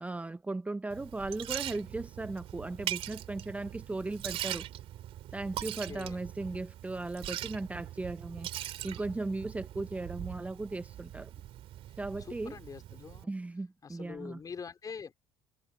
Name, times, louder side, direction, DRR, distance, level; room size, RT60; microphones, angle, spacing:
voice 1, 0.0-4.7 5.3-11.3 12.0-12.5 13.3-14.4, right 2 dB, 10° right, 0.7 m, -37 dB
Liquid, 0.9-13.2, right 13 dB, 55° right, 2.9 m, -41 dB
voice 2, 5.6-6.2 11.9-13.4 13.8-15.2, left 6 dB, 35° left, 4.2 m, -45 dB
hypercardioid pair, 65°, 11 cm